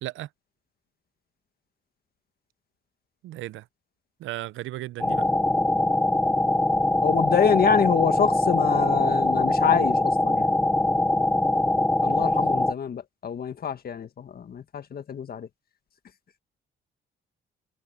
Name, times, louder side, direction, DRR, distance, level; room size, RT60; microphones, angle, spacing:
voice 1, 3.2-3.6 4.2-5.2, right 15 dB, 80° right, 0.7 m, -35 dB
sound 1, 5.0-12.7, left 2 dB, 10° left, 0.7 m, -22 dB
voice 2, 7.0-10.5 12.0-15.5, left 7 dB, 50° left, 1.7 m, -26 dB
cardioid pair, 90°, 20 cm